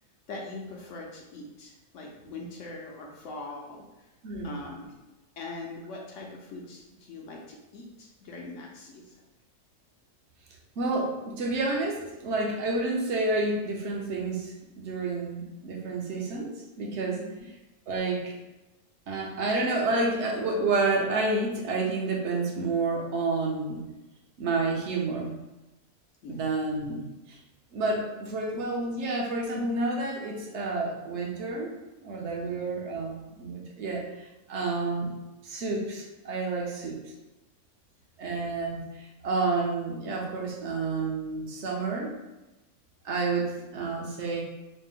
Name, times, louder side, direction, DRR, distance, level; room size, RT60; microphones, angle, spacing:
voice 1, 0.3-3.8 4.4-4.9 5.4-9.1 17.2-17.3 26.2-26.5 32.4-32.5, left 2 dB, 65° left, -1 dB, 0.9 m, -42 dB
voice 2, 4.2-4.5 10.8-17.2 17.9-18.4 19.1-23.8 24.4-25.3 26.3-27.4 27.7-31.7 32.0-34.0 34.5-35.1 35.4-37.0 38.2-42.1 43.0-44.4, right 3 dB, 55° right, -1 dB, 0.9 m, -29 dB
4.1 x 2.1 x 3.6 m, 1.0 s
omnidirectional pair, 1.6 m